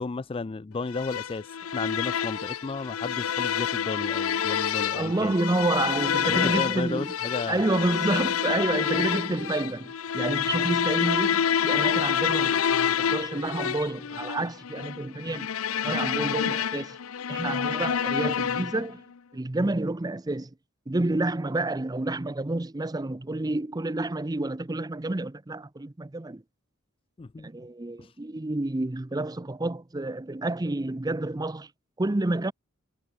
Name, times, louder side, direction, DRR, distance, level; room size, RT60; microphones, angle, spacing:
voice 1, 0.0-5.4 6.2-7.6 27.2-27.5 28.0-28.1, left 3 dB, 25° left, 0.4 m, -33 dB
sound 1, 0.9-18.9, left 8 dB, 90° left, 0.6 m, -28 dB
voice 2, 4.9-7.1 7.5-15.5 15.8-17.0 17.3-19.0 19.3-20.5 20.9-26.4 27.4-31.7 32.0-32.5, right 2 dB, 20° right, 0.6 m, -29 dB
head